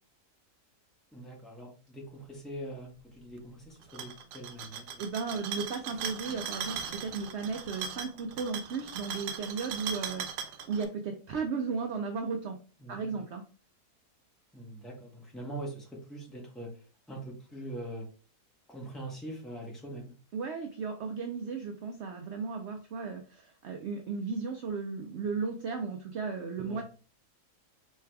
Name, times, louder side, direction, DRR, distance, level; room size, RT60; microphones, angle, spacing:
voice 1, 1.1-5.0 12.8-13.2 14.5-18.1 18.7-20.1 26.6-26.8, right 1 dB, ahead, -2 dB, 0.9 m, -43 dB
sound 1, 3.8-10.9, right 7 dB, 90° right, 1.2 m, -39 dB
voice 2, 5.0-12.6 12.9-13.4 20.3-26.8, right 5 dB, 75° right, 4 dB, 0.6 m, -35 dB
4.7 x 3.3 x 2.2 m, 0.36 s
omnidirectional pair, 1.7 m